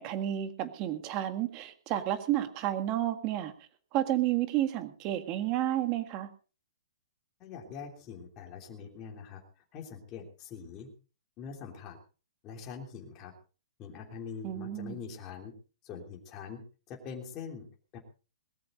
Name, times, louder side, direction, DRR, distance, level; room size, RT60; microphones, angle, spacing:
voice 1, 0.0-3.5 3.9-6.3 14.4-15.0, right 13 dB, 20° right, 9 dB, 1.8 m, -31 dB
voice 2, 7.4-10.9 11.4-12.0 12.4-13.3 13.8-15.5 15.8-17.6 17.9-18.0, left 6 dB, 15° left, 0 dB, 3.3 m, -44 dB
21.0 x 14.0 x 3.9 m, 0.36 s
hypercardioid pair, 180°, 2 cm